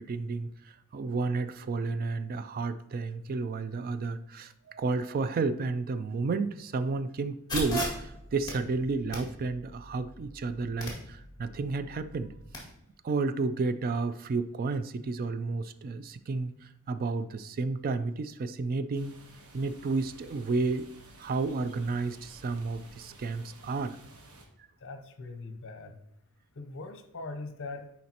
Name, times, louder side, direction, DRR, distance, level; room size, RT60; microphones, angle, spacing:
voice 1, 0.0-12.3 13.0-19.1 19.5-20.9 21.2-24.0, right 3 dB, 40° right, 13 dB, 0.3 m, -32 dB
sound 1, 7.5-12.6, equal, 20° left, 2.0 m, -39 dB
sound 2, 18.9-24.5, right 2 dB, 90° right, 1.2 m, -53 dB
voice 2, 24.8-26.0 26.6-27.9, left 3 dB, 60° left, 7 dB, 0.8 m, -41 dB
10.5 x 4.2 x 2.9 m, 0.83 s
head